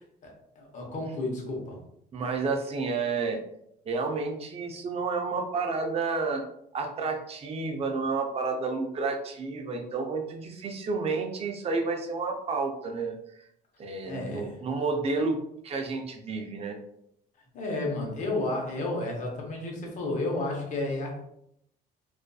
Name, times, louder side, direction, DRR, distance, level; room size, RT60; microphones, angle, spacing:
voice 1, 0.0-1.8 14.0-14.5 17.5-21.3, left 2 dB, 45° left, 0 dB, 0.9 m, -32 dB
voice 2, 2.1-3.4 3.9-6.4 6.7-13.2 13.8-15.4 15.6-16.8, right 4 dB, 35° right, 3 dB, 0.5 m, -30 dB
2.5 x 2.4 x 2.3 m, 0.75 s
cardioid pair, 110°, 17 cm